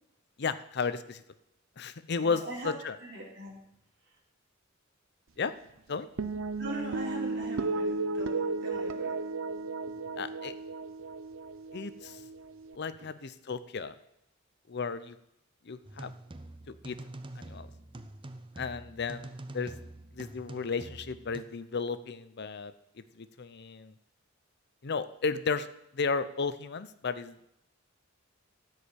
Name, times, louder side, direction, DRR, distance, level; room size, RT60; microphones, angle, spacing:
voice 1, 0.4-1.2 1.8-3.0 5.4-5.5 5.9-6.1 10.2-10.5 11.7-12.2 12.7-13.9 14.7-15.2 15.6-16.1 16.7-17.0 17.4-17.7 18.6-19.3 19.5-19.7 20.1-23.9 24.8-25.7 25.9-27.5, left 5 dB, 55° left, 13 dB, 0.7 m, -34 dB
voice 2, 2.2-2.7 3.0-3.6 6.6-9.2 9.9-10.0 13.0-13.1, right 1 dB, 60° right, -1 dB, 3.4 m, -41 dB
sound 1, 6.2-12.8, right 3 dB, 75° right, 0.6 m, -34 dB
sound 2, 15.8-21.4, right 1 dB, 25° right, 0.6 m, -45 dB
14.0 x 5.0 x 8.5 m, 0.80 s
head